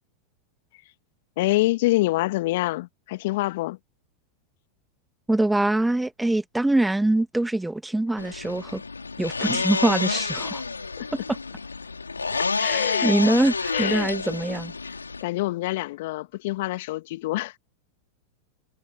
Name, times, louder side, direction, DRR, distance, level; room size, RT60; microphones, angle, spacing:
voice 1, 1.4-3.8 10.1-10.2 11.0-11.1 12.3-13.3 13.7-14.1 15.2-17.6, left 18 dB, 55° left, 1.8 m, -26 dB
voice 2, 5.3-8.8 9.2-10.6 11.1-11.4 12.6-14.7, right 2 dB, 5° right, 1.7 m, -24 dB
sound 1, 8.2-15.2, left 4 dB, 85° left, 3.3 m, -29 dB
figure-of-eight pair, 90°, 0 cm